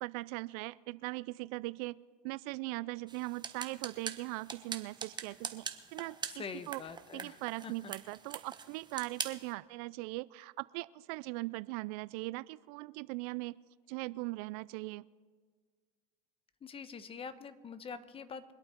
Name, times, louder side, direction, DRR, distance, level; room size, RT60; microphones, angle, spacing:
voice 1, 0.0-2.0 2.2-5.7 5.9-6.8 7.1-13.6 13.9-15.0, right 22 dB, 65° right, 19 dB, 0.4 m, -40 dB
sound 1, 3.1-9.5, right 6 dB, 20° right, 1.2 m, -44 dB
voice 2, 6.3-7.9 16.6-18.5, left 5 dB, 25° left, 13 dB, 1.0 m, -45 dB
23.5 x 8.5 x 4.5 m, 1.5 s
supercardioid pair, 100°, 21 cm